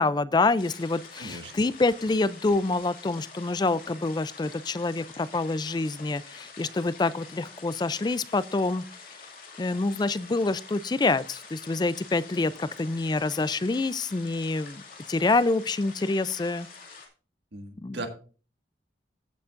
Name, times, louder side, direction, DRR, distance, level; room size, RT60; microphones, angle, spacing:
voice 1, 0.0-8.8 9.6-14.8 15.1-16.7 17.8-18.0, left 3 dB, 25° left, 0.3 m, -26 dB
sound 1, 0.6-17.1, left 4 dB, 50° left, 2.3 m, -47 dB
voice 2, 1.2-1.5 17.5-18.1, right 2 dB, 70° right, 1.7 m, -37 dB
15.5 x 6.9 x 2.5 m
head